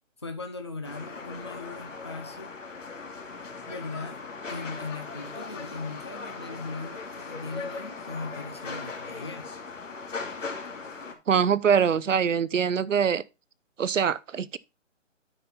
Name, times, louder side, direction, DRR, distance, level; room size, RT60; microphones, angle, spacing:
voice 1, 0.2-2.5 3.7-4.2 4.5-9.5, left 3 dB, 20° left, 0.7 m, -39 dB
sound 1, 0.8-11.1, left 4 dB, 75° left, 2.7 m, -39 dB
voice 2, 11.3-13.2 13.8-14.6, right 7 dB, 75° right, 0.8 m, -23 dB
9.3 x 5.7 x 4.3 m
hypercardioid pair, 175°, 38 cm